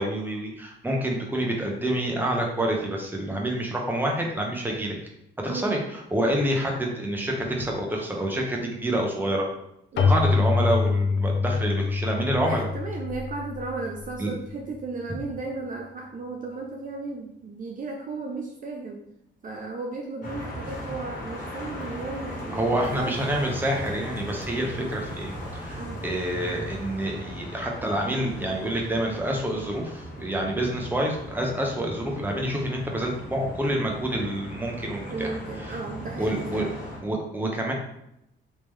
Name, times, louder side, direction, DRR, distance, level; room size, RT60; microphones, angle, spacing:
voice 1, 0.0-5.0 5.4-9.5 10.1-12.7 14.2-14.3 22.5-35.3 35.6-35.8 36.2-36.6 37.0-37.7, right 1 dB, 10° right, 0 dB, 0.9 m, -27 dB
Keyboard (musical), 10.0-14.5, left 4 dB, 65° left, 0.6 m, -25 dB
voice 2, 12.3-19.0 19.4-23.1 25.8-26.0 35.1-36.7, right 3 dB, 40° right, 1 dB, 0.5 m, -35 dB
sound 1, 20.2-37.0, equal, 45° left, 1.5 m, -38 dB
3.6 x 2.9 x 3.2 m, 0.81 s
cardioid pair, 90°, 20 cm